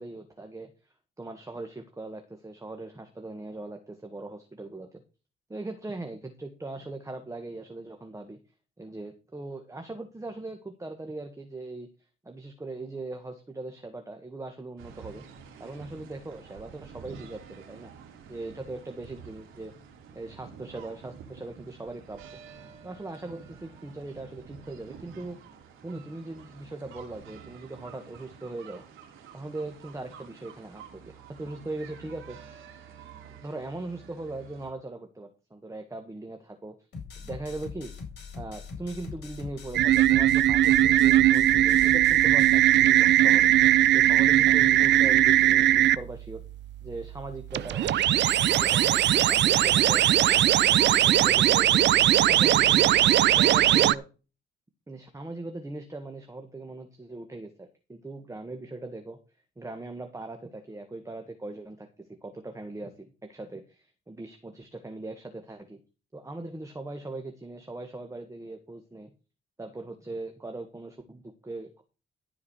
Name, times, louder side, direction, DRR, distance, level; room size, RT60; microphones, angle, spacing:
voice 1, 0.0-5.0 5.5-8.4 8.8-11.9 12.2-15.2 15.6-17.9 18.3-19.7 20.1-22.2 22.8-25.4 25.8-28.8 29.3-32.4 33.4-36.7 37.2-37.9 38.3-43.5 43.9-46.4 46.8-48.0 48.6-51.8 52.3-53.0 53.3-54.1 54.9-59.2 59.6-61.9 62.2-65.8 66.1-69.1 69.6-71.8, right 2 dB, 15° right, 6 dB, 1.6 m, -40 dB
sound 1, 14.8-34.7, right 7 dB, 90° right, 2.9 m, -49 dB
sound 2, 36.9-42.6, left 5 dB, 55° left, 4.9 m, -41 dB
sound 3, 39.7-46.0 47.5-53.9, right 12 dB, 65° right, 0.5 m, -20 dB
13.5 x 4.9 x 6.3 m, 0.32 s
cardioid pair, 90°, 20 cm